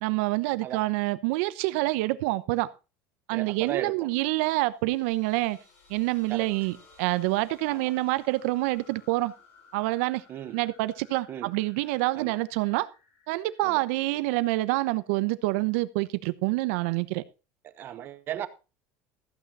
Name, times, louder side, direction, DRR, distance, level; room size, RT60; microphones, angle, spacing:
voice 1, 0.0-2.7 3.3-5.6 5.9-9.3 9.7-10.2 10.5-12.9 13.3-17.2, right 20 dB, 70° right, 0.9 m, -27 dB
voice 2, 3.3-4.0 6.3-6.5 7.7-7.9 10.3-10.6 11.3-11.5 12.2-12.4 13.6-13.8 17.8-18.5, right 11 dB, 30° right, 1.0 m, -36 dB
sound 1, 4.6-15.2, left 4 dB, 70° left, 5.8 m, -58 dB
14.5 x 8.7 x 4.2 m
cardioid pair, 180°, 7 cm